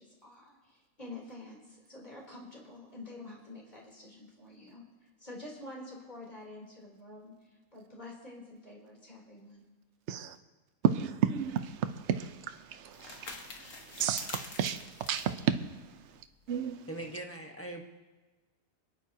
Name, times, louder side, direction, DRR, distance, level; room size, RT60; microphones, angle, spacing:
voice 1, 0.0-4.8 5.2-9.6, left 2 dB, 30° left, 3.8 m, -48 dB
voice 2, 10.8-11.7 12.1-13.4 13.9-15.6 16.5-16.8, right 8 dB, 55° right, 1.0 m, -31 dB
sound 1, 11.4-16.6, left 4 dB, 65° left, 1.6 m, -47 dB
voice 3, 16.9-17.8, right 1 dB, 10° left, 1.2 m, -41 dB
27.0 x 10.0 x 2.9 m
omnidirectional pair, 1.5 m